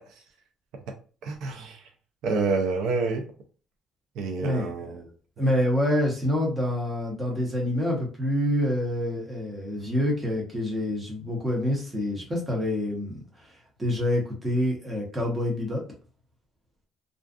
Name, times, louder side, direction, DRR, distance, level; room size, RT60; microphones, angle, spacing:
voice 1, 1.2-1.8 2.2-3.2 4.2-5.1, right 4 dB, 80° right, 3 dB, 0.5 m, -28 dB
voice 2, 4.4-4.7 5.4-13.2 13.8-15.8, left 1 dB, 15° right, -2 dB, 0.9 m, -26 dB
2.5 x 2.3 x 2.4 m, 0.38 s
cardioid pair, 155°, 0 cm